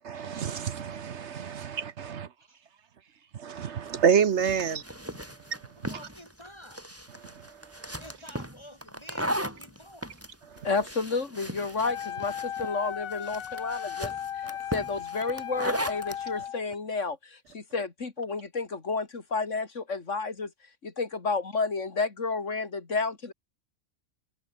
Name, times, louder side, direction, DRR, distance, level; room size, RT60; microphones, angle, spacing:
voice 1, 0.0-2.3 3.4-4.8, right 7 dB, 60° right, 1.2 m, -27 dB
sound 1, 3.9-16.2, equal, 10° right, 7.6 m, -37 dB
voice 2, 5.9-6.9 7.9-10.2, equal, 20° left, 7.7 m, -49 dB
voice 3, 10.6-14.1 14.4-20.5 20.8-23.3, left 4 dB, 60° left, 2.8 m, -31 dB
Wind instrument woodwind instrument, 11.8-16.6, left 9 dB, 80° left, 1.4 m, -36 dB
omnidirectional pair, 1.4 m